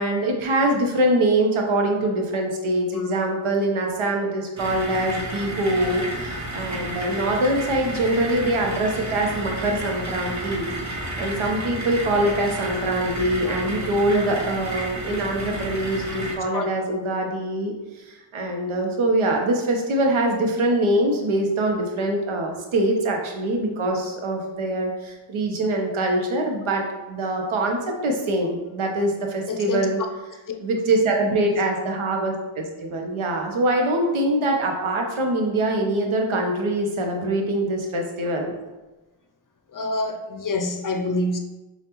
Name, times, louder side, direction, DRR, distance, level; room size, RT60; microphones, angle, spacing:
voice 1, 0.0-10.7 11.2-30.0 30.6-38.6, right 1 dB, 75° right, 2 dB, 0.8 m, -24 dB
sound 1, 4.6-16.4, right 1 dB, 35° right, 1.1 m, -31 dB
voice 2, 16.1-16.7 29.5-29.9 39.7-41.4, left 2 dB, 40° left, 5 dB, 0.5 m, -27 dB
5.1 x 2.4 x 2.9 m, 1.1 s
cardioid pair, 45°, 50 cm